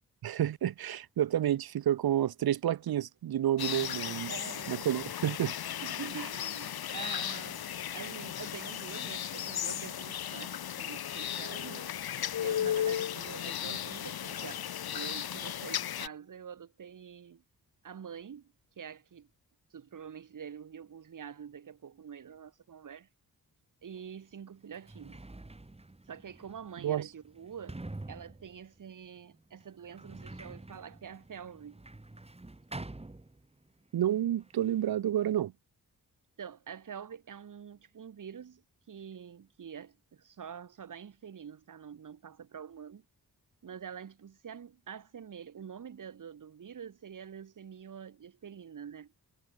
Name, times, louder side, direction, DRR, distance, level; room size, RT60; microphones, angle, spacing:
voice 1, 0.2-4.3 4.7-5.5 26.8-27.0 33.9-35.5, right 11 dB, 75° right, 0.7 m, -29 dB
sound 1, 3.6-16.1, left 10 dB, 75° left, 1.0 m, -36 dB
voice 2, 4.3-4.8 5.8-12.0 12.4-14.7 14.9-17.4 17.8-19.3 19.7-23.1 23.8-25.2 26.1-27.8 28.1-31.8 36.4-43.0 43.6-49.1, right 7 dB, 55° right, 1.5 m, -46 dB
Sliding door, 23.9-24.0 24.6-33.8 34.1-34.9, right 2 dB, 15° right, 3.9 m, -47 dB
wide cardioid pair, 135°, 37 cm